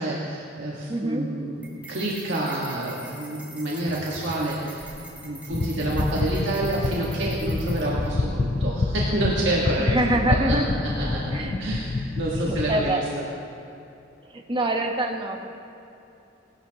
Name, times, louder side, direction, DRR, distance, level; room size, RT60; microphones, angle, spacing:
voice 1, 0.0-10.0 10.3-10.6 10.8-13.2, right 1 dB, 70° right, -5 dB, 1.6 m, -28 dB
voice 2, 0.9-1.3 9.8-10.7 11.3-11.9 12.4-13.0 14.3-15.5, right 1 dB, 25° right, 3 dB, 1.1 m, -26 dB
sound 1, 1.6-8.1, right 2 dB, 10° right, 1.9 m, -45 dB
Tap, 3.9-9.2 11.8-11.9, equal, 60° left, 2.0 m, -42 dB
sound 2, 5.5-12.9, left 3 dB, 30° left, 0.3 m, -27 dB
17.5 x 11.5 x 2.9 m, 2.8 s
head